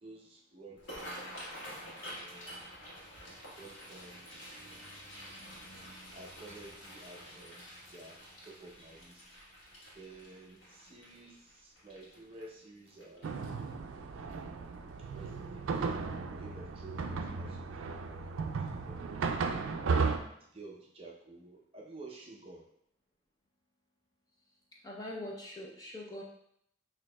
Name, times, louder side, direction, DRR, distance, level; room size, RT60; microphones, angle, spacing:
voice 1, 0.0-1.7 2.0-2.8 3.6-4.5 6.1-9.4 9.9-13.3 15.1-15.7 16.4-19.4 20.4-22.7, right 2 dB, 30° right, -2 dB, 0.5 m, -52 dB
sound 1, 0.7-13.8 14.3-14.6 14.9-15.3 15.7-15.9 17.1-17.3 17.7-17.8 18.3-18.4, equal, 70° left, 1.3 m, -49 dB
sound 2, 13.2-20.2, right 4 dB, 80° right, 0.3 m, -35 dB
voice 2, 24.8-26.2, left 1 dB, 20° left, -2 dB, 0.5 m, -42 dB
6.1 x 2.7 x 2.2 m, 0.71 s
head